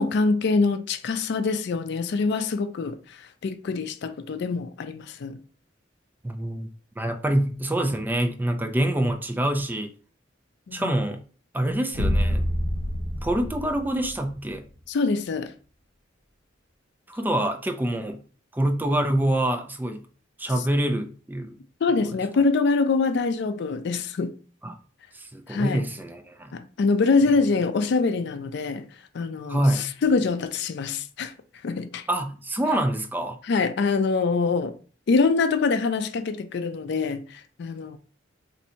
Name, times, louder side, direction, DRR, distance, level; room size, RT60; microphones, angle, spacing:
voice 1, 0.0-5.4 10.7-10.9 14.9-15.5 21.8-24.3 25.5-25.8 26.5-31.3 31.6-32.0 33.5-34.7 35.1-38.0, left 4 dB, 60° left, 0.4 m, -24 dB
voice 2, 6.2-6.7 7.0-9.9 10.7-11.2 11.5-12.5 13.1-14.6 17.1-18.2 18.5-20.0 20.4-21.6 22.0-22.1 24.6-24.8 25.1-26.6 29.5-29.9 32.1-33.4, right 1 dB, 10° right, 0.3 m, -26 dB
sound 1, 11.9-14.6, equal, 70° right, 1.1 m, -26 dB
2.6 x 2.6 x 4.2 m
head